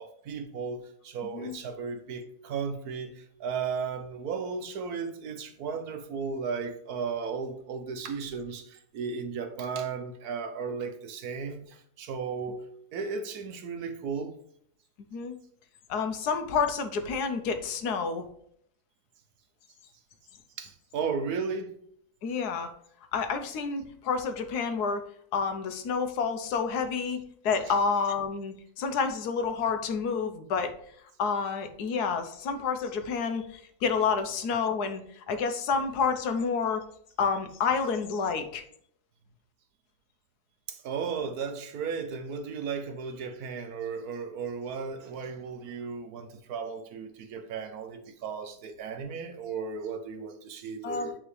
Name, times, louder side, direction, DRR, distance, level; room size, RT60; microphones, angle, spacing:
voice 1, 0.0-12.6 12.9-14.4 20.6-21.7 40.7-51.2, right 5 dB, 70° right, 1.3 m, -35 dB
voice 2, 15.9-18.2 22.2-22.7 23.1-25.0 25.3-27.2 27.4-30.7 31.2-35.0 35.3-36.8 37.2-38.6 50.8-51.1, left 5 dB, 80° left, 1.3 m, -29 dB
9.1 x 3.7 x 3.2 m
omnidirectional pair, 1.7 m